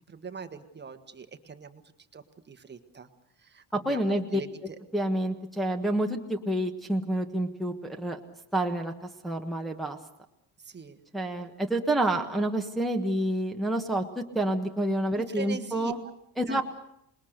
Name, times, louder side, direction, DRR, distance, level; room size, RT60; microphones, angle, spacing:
voice 1, 0.1-1.8 2.1-3.1 3.4-4.8 10.6-11.0 15.3-16.1 16.5-16.6, right 5 dB, 25° right, 8 dB, 1.4 m, -42 dB
voice 2, 3.8-4.4 4.9-8.2 8.5-10.0 11.1-16.0 16.4-16.6, right 1 dB, ahead, 1 dB, 1.4 m, -28 dB
27.5 x 21.0 x 6.6 m, 0.74 s
cardioid pair, 155°, 44 cm